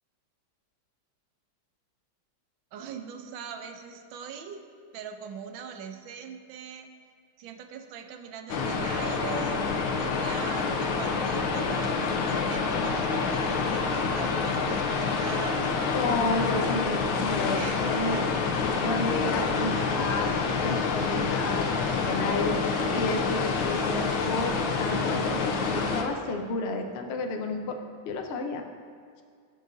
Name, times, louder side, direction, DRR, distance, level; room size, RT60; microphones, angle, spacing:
voice 1, 2.7-4.7 4.9-6.9 7.4-15.7 16.5-17.1 17.5-18.2, right 7 dB, 75° right, 6 dB, 1.4 m, -41 dB
sound 1, 8.5-26.0, left 4 dB, 85° left, 1.7 m, -27 dB
voice 2, 15.9-18.2 18.8-20.3 20.6-22.6 22.9-27.8 28.1-28.6, left 3 dB, 70° left, 4 dB, 0.6 m, -31 dB
17.0 x 7.6 x 2.7 m, 2.1 s
omnidirectional pair, 2.2 m